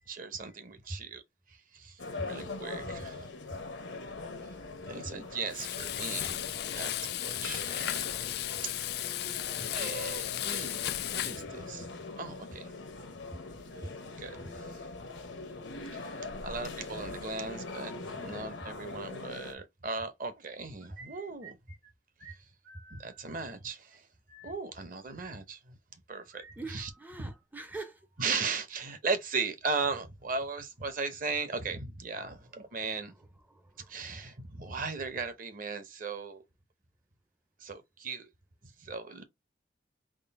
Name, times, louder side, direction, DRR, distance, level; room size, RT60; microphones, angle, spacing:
voice 1, 0.1-1.2 1.5-3.3 4.9-8.3 8.6-8.7 9.6-11.9 12.2-12.7 14.2-14.8 15.8-16.1 16.4-21.6 22.9-24.1 24.4-25.7 26.1-26.9 27.2-27.3 28.2-33.1 33.9-36.4 37.6-38.3 38.8-39.2, right 4 dB, 50° right, 0.7 m, -37 dB
sound 1, 2.0-19.5, left 3 dB, 85° left, 0.9 m, -42 dB
Frying (food), 5.5-11.4, left 13 dB, 60° left, 0.3 m, -35 dB
sound 2, 20.6-21.9 22.2-22.4 22.6-23.6 23.9-24.0 24.3-24.5 26.3-27.7 28.0-28.8, right 3 dB, 75° right, 1.3 m, -54 dB
voice 2, 26.6-28.0 33.5-33.9, right 3 dB, 10° right, 0.4 m, -44 dB
3.6 x 2.0 x 4.1 m
head